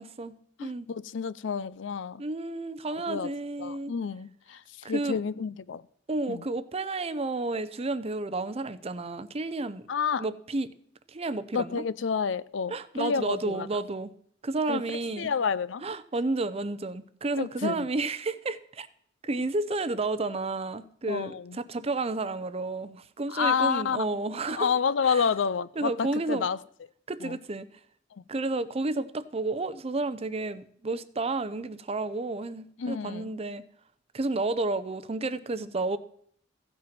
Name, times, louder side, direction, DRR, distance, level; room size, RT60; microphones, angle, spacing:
voice 1, 0.0-0.9 2.2-3.9 4.8-5.2 6.1-9.9 10.2-10.7 11.1-11.8 12.7-14.1 14.4-15.3 15.8-18.9 19.2-24.7 25.1-25.2 25.8-26.5 27.1-27.7 28.3-33.6 34.1-36.0, right 2 dB, 30° right, 0.6 m, -31 dB
voice 2, 0.6-2.2 3.1-3.3 3.6-5.8 6.3-6.4 9.9-10.2 11.5-13.7 14.7-15.8 17.4-17.9 21.1-21.6 23.3-24.1 24.5-26.6 27.2-27.4 28.2-28.3 32.8-33.3, left 6 dB, 70° left, 0.5 m, -29 dB
15.0 x 7.7 x 5.9 m
head